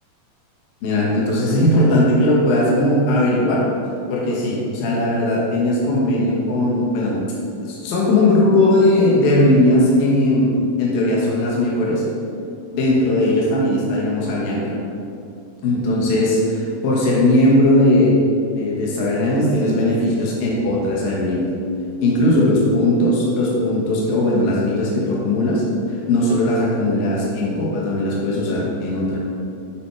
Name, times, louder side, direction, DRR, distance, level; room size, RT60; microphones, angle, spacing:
voice 1, 0.8-3.6 4.1-7.2 7.6-10.5 10.8-12.0 12.7-14.8 15.6-18.2 18.6-21.5 22.0-25.6 25.9-29.2, left 1 dB, 60° left, -5 dB, 2.7 m, -18 dB
8.6 x 4.1 x 4.6 m, 2.5 s
omnidirectional pair, 5.0 m